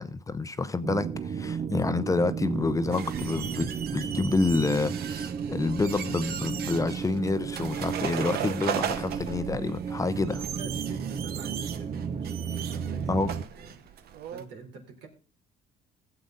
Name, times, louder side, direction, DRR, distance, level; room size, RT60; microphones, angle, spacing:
voice 1, 0.0-10.4 13.1-13.3, left 3 dB, 20° left, 0.7 m, -28 dB
sound 1, 0.8-13.5, right 7 dB, 40° right, 0.8 m, -34 dB
sound 2, 2.9-14.5, right 9 dB, 65° right, 1.1 m, -37 dB
voice 2, 10.6-13.3 13.6-15.1, right 4 dB, 90° right, 3.9 m, -47 dB
17.0 x 7.9 x 3.9 m
cardioid pair, 110°, 17 cm